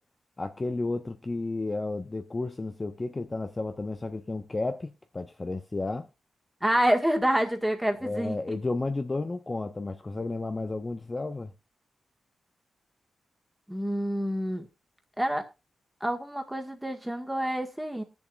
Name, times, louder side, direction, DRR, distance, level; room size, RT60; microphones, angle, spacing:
voice 1, 0.4-6.1 8.0-11.5, left 2 dB, 20° left, 0.7 m, -32 dB
voice 2, 6.6-8.6 13.7-14.7 15.2-15.5 16.0-18.0, right 1 dB, 5° right, 1.8 m, -27 dB
21.0 x 7.1 x 2.5 m
wide cardioid pair, 135°, 0 cm